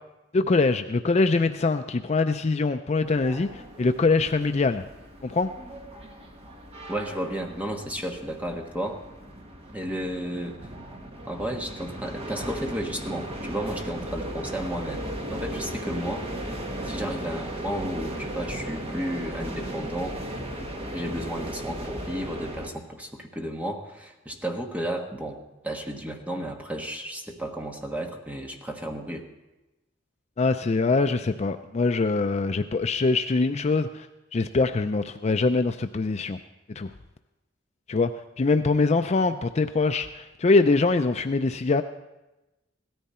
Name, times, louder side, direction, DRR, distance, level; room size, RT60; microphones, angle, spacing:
voice 1, 0.3-4.8 5.2-5.5 30.4-36.4 36.7-36.9 37.9-38.1 38.4-41.8, left 3 dB, 35° left, 8 dB, 0.4 m, -23 dB
sound 1, 3.0-22.7, right 1 dB, 30° right, 1.4 m, -36 dB
voice 2, 6.9-9.0 9.7-10.6 11.3-15.1 15.3-16.3 16.8-20.2 20.9-29.3, right 1 dB, 10° right, 2 dB, 1.3 m, -33 dB
17.0 x 13.5 x 4.3 m, 1.0 s
head